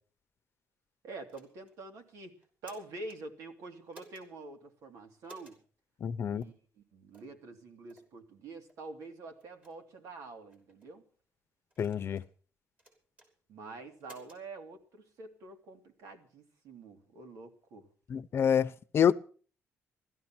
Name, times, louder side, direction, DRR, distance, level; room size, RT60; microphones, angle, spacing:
voice 1, 1.0-2.3 2.6-5.6 6.3-11.0 13.5-17.9, right 3 dB, 85° right, 2.9 m, -47 dB
sound 1, 1.3-1.8 2.4-3.2 3.9-4.3 5.2-5.6 6.4-6.5 7.1-7.3 7.9-8.1 8.7-8.8 9.4-9.7 10.5-10.9 11.7-12.3 12.8-13.3 14.0-14.4, right 1 dB, 30° right, 5.5 m, -57 dB
voice 2, 6.0-6.4 11.8-12.2 18.1-19.1, left 8 dB, 50° left, 0.8 m, -27 dB
16.5 x 13.0 x 6.1 m
cardioid pair, 130°, 5 cm